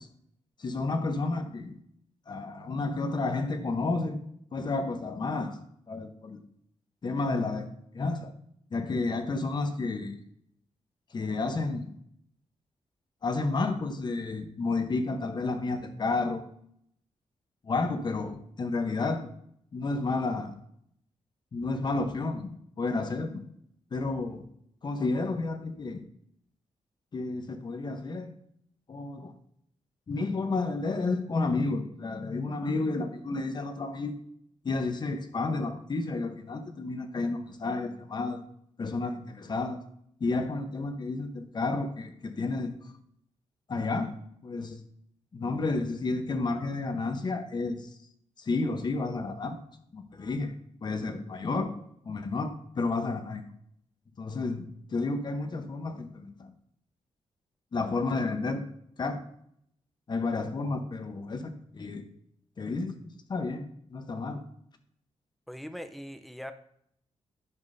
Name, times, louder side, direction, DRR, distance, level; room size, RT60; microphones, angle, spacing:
voice 1, 0.6-1.7 2.3-4.2 4.5-5.6 5.9-6.4 7.0-7.7 7.9-8.3 8.7-10.2 11.1-11.9 13.2-16.4 17.6-19.3 19.7-20.5 21.5-22.5 22.8-23.4 23.9-24.4 24.8-26.0 27.1-28.3 28.9-29.3 30.1-34.2 34.6-38.4 38.8-39.8 40.2-42.7 43.7-44.1 44.4-44.8 45.3-47.9 48.4-49.6 49.9-50.5 50.8-51.8 52.0-53.4 54.2-54.6 54.9-56.5 57.7-58.6 59.0-59.2 60.1-62.0 62.6-63.0 63.3-64.4, left 3 dB, 40° left, 7 dB, 0.9 m, -31 dB
voice 2, 65.5-66.5, equal, ahead, 9 dB, 0.5 m, -41 dB
11.0 x 6.0 x 2.6 m, 0.70 s
wide cardioid pair, 145°, 12 cm